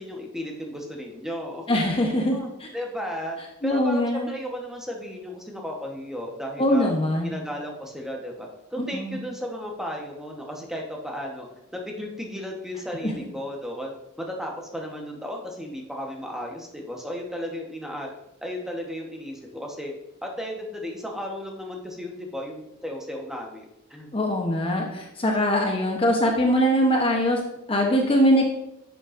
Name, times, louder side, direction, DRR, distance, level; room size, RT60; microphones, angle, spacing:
voice 1, 0.0-1.8 2.3-6.9 7.2-11.5 11.7-18.1 18.4-19.9 20.2-23.6 23.9-24.1, equal, ahead, 0 dB, 1.1 m, -34 dB
voice 2, 1.7-2.4 3.6-4.3 6.6-7.3 8.8-9.2 24.1-27.4 27.7-28.5, equal, 25° left, 1 dB, 0.9 m, -22 dB
11.0 x 7.0 x 2.6 m, 0.85 s
head